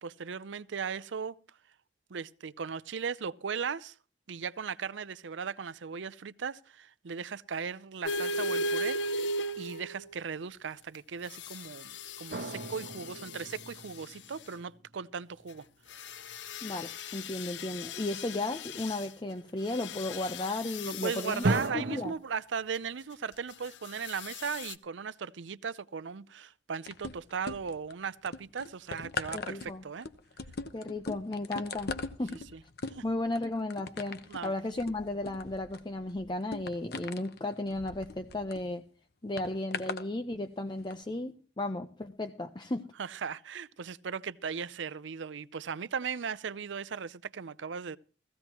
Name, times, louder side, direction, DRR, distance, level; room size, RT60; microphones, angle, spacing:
voice 1, 0.0-1.4 2.1-3.9 4.3-9.3 9.6-15.6 20.9-30.1 32.5-32.6 32.9-33.0 34.3-34.5 43.0-48.0, right 6 dB, 85° right, 0.6 m, -37 dB
sound 1, 8.1-10.2 11.3-13.8 15.9-19.1 19.7-21.6 24.0-24.7, left 1 dB, 75° left, 0.6 m, -37 dB
sound 2, 12.3-14.4 21.4-22.1, right 2 dB, 60° right, 0.9 m, -33 dB
voice 2, 16.6-21.4 21.7-22.1 29.3-29.8 30.7-31.9 32.2-32.4 33.0-38.8 39.2-42.9, left 2 dB, 25° left, 0.7 m, -34 dB
sound 3, 26.9-27.9 28.3-38.6 39.4-40.1 40.8-40.9, left 4 dB, 60° left, 1.0 m, -41 dB
17.0 x 15.5 x 3.0 m
head